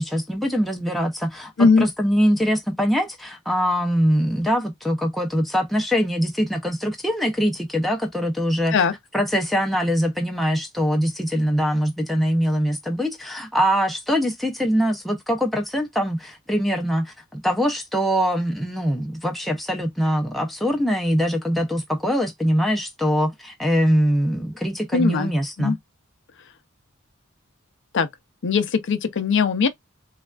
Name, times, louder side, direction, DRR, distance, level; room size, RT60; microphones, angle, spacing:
voice 1, 0.0-8.7 9.1-25.8, equal, ahead, 0.5 m, -23 dB
voice 2, 24.9-25.3 25.6-25.8 27.9-28.1 28.4-29.7, left 4 dB, 60° left, 0.5 m, -19 dB
3.3 x 2.3 x 2.3 m
head